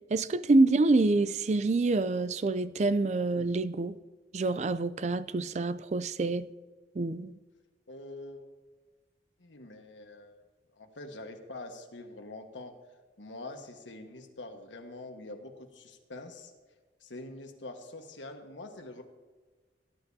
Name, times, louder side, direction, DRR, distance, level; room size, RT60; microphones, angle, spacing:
voice 1, 0.1-3.9 4.3-6.5 7.0-7.3, right 2 dB, 40° right, 0.4 m, -26 dB
voice 2, 7.9-8.5 9.4-10.4 10.7-12.7 13.2-16.5 17.0-19.0, left 2 dB, 85° left, 1.4 m, -45 dB
18.0 x 10.5 x 2.8 m
head